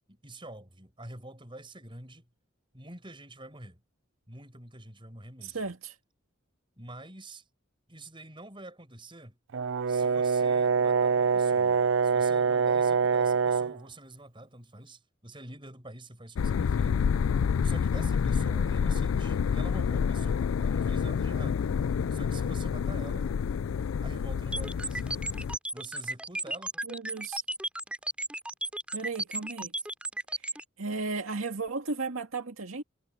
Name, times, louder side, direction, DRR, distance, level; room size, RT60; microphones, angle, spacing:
voice 1, 0.1-2.3 2.7-3.8 4.3-5.6 6.8-7.4 7.9-9.4 9.9-17.0 17.6-21.7 22.1-23.3 24.0-25.2 25.7-26.7, right 2 dB, 25° right, 7.8 m, -47 dB
voice 2, 5.4-6.0 26.8-27.4 28.9-29.7 30.8-32.8, right 3 dB, 80° right, 2.1 m, -34 dB
Brass instrument, 9.5-13.8, right 5 dB, 65° right, 0.4 m, -25 dB
sound 1, 16.4-25.6, left 6 dB, 75° left, 0.4 m, -28 dB
sound 2, 24.5-30.6, right 1 dB, 5° right, 5.6 m, -34 dB
head